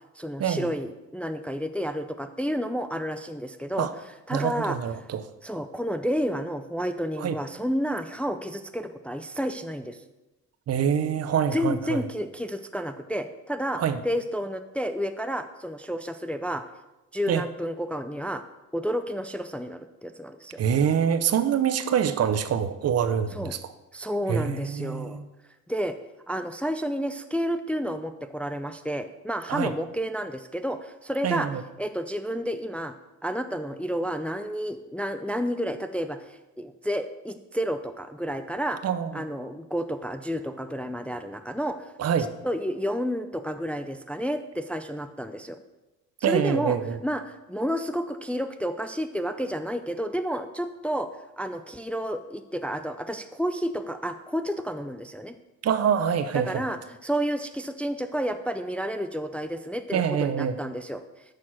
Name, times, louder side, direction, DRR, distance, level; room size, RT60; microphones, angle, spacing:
voice 1, 0.2-3.9 4.3-4.8 5.4-10.0 11.5-16.6 17.1-18.4 18.7-20.6 23.3-23.6 23.9-25.2 25.7-26.0 26.3-31.5 31.8-32.9 33.2-38.8 39.1-41.9 42.4-45.6 46.3-46.8 47.0-51.1 51.4-55.4 56.3-61.0, equal, 5° left, 8 dB, 0.4 m, -30 dB
voice 2, 4.3-5.3 7.2-7.4 10.7-12.0 13.8-14.0 17.3-17.4 20.6-23.6 24.3-25.3 29.5-29.7 31.2-31.6 38.8-39.2 42.0-42.3 46.2-47.0 55.6-56.7 59.9-60.6, right 8 dB, 55° right, 11 dB, 0.7 m, -25 dB
6.6 x 5.5 x 6.2 m, 1.0 s
cardioid pair, 90°, 30 cm